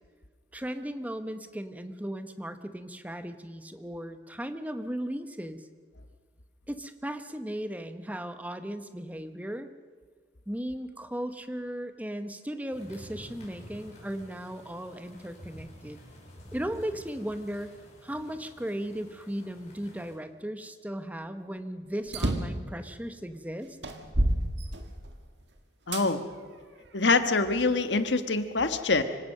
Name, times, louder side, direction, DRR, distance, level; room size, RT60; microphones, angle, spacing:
voice 1, 0.5-5.7 6.7-9.7 10.5-16.0 16.5-23.7, equal, 10° right, 9 dB, 1.0 m, -36 dB
sound 1, 12.7-20.2, equal, 40° left, 6.0 m, -50 dB
sound 2, 22.1-22.6 23.3-23.4 23.8-25.2 25.9-26.1 26.8-27.8, right 1 dB, 80° right, 1.8 m, -29 dB
voice 2, 25.9-26.2 26.9-29.0, left 3 dB, 85° left, 9 dB, 1.4 m, -25 dB
25.0 x 16.5 x 6.6 m, 1.5 s
head